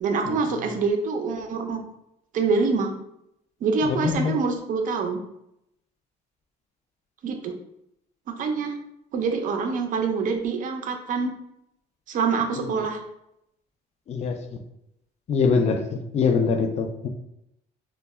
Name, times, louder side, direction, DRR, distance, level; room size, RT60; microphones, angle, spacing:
voice 1, 0.0-1.8 2.3-2.9 3.6-5.2 7.2-7.5 8.3-8.7 9.1-11.3 12.1-13.0, right 4 dB, 50° right, 4 dB, 0.5 m, -25 dB
voice 2, 3.8-4.4 14.1-14.6 15.3-17.1, left 5 dB, 40° left, 6 dB, 0.4 m, -24 dB
2.1 x 2.0 x 3.4 m, 0.81 s
cardioid pair, 110°, 17 cm